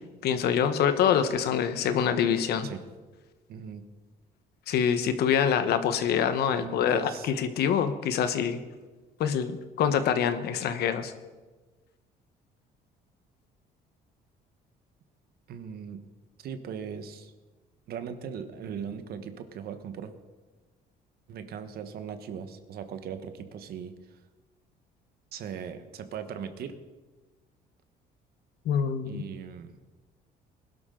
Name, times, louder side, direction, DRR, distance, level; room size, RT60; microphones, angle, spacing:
voice 1, 0.2-2.7 4.7-8.6 9.2-11.1 28.6-29.2, left 8 dB, 70° left, 10 dB, 1.2 m, -25 dB
voice 2, 3.5-3.8 6.6-7.3 15.5-16.1 16.4-17.3 17.9-20.1 21.3-24.2 25.3-26.8 29.0-29.8, right 7 dB, 65° right, 9 dB, 1.3 m, -39 dB
20.5 x 12.0 x 3.9 m, 1.3 s
cardioid pair, 110°, 17 cm